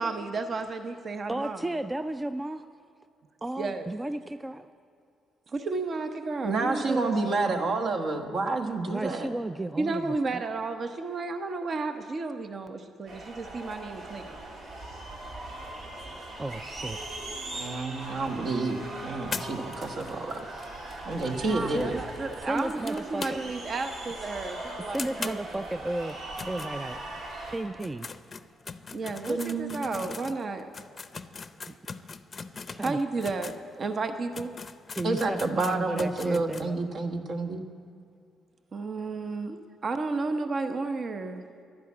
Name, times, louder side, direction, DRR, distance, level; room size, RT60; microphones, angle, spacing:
voice 1, 0.0-1.8 3.6-3.9 5.5-7.4 9.8-14.4 21.5-25.6 28.9-30.7 31.6-31.7 32.8-34.5 38.7-41.4, right 3 dB, 45° right, 7 dB, 0.8 m, -32 dB
voice 2, 1.3-2.6 3.4-4.7 8.9-10.4 16.4-17.0 21.7-22.0 22.5-23.4 24.9-26.2 26.5-27.0 27.5-28.1 31.7-31.8 32.7-33.0 35.0-36.8, right 1 dB, 15° right, 10 dB, 0.4 m, -33 dB
voice 3, 6.4-9.3 17.3-20.4 21.0-21.9 29.3-29.8 35.0-37.6, right 3 dB, 60° right, 4 dB, 1.3 m, -29 dB
sound 1, 13.1-27.6, right 2 dB, 80° right, 2.7 m, -40 dB
sound 2, 19.3-23.7 24.0-24.1 24.4-24.5 24.9-27.3 27.7-33.6 34.0-34.1 34.3-36.7, left 4 dB, 35° left, 0.6 m, -41 dB
11.5 x 10.5 x 8.4 m, 2.4 s
cardioid pair, 90°, 0 cm